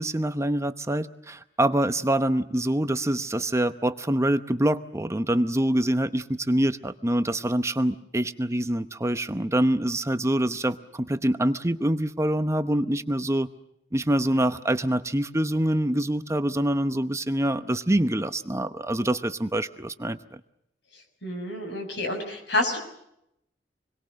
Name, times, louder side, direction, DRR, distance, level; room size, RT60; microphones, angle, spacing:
voice 1, 0.0-13.5 13.9-20.2, right 1 dB, 15° right, 10 dB, 0.8 m, -25 dB
voice 2, 21.2-22.8, left 1 dB, 70° left, 6 dB, 6.5 m, -28 dB
27.5 x 22.0 x 6.4 m, 0.79 s
head